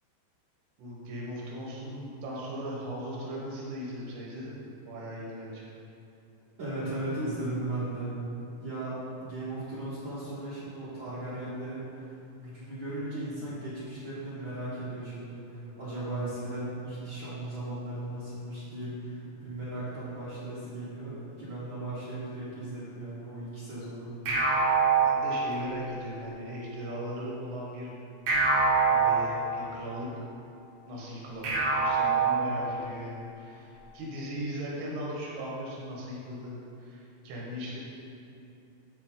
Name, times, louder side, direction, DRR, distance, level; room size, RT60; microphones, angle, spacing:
voice 1, 0.8-5.7 13.3-13.5 25.0-27.9 28.9-30.1 30.9-37.8, equal, 85° right, -4 dB, 3.2 m, -38 dB
voice 2, 6.6-8.1 8.6-11.8 12.3-24.1, right 1 dB, 50° right, -11 dB, 1.6 m, -37 dB
sound 1, 24.3-25.9 28.3-29.9 31.4-32.9, right 4 dB, 65° right, 3.3 m, -25 dB
11.5 x 4.7 x 3.8 m, 2.8 s
omnidirectional pair, 4.4 m